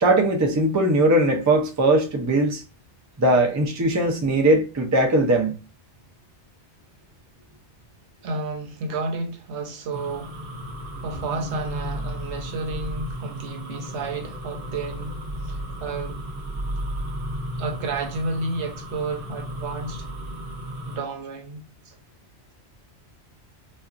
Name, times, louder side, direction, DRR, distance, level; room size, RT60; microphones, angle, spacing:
voice 1, 0.0-2.6 3.2-5.6, right 1 dB, 25° right, 0.4 m, -20 dB
voice 2, 8.2-10.3 11.0-16.2 17.6-20.1 20.9-22.0, right 3 dB, 80° right, 1.0 m, -31 dB
sound 1, 9.9-21.0, equal, 55° right, 1.0 m, -34 dB
4.2 x 2.3 x 2.5 m
omnidirectional pair, 1.2 m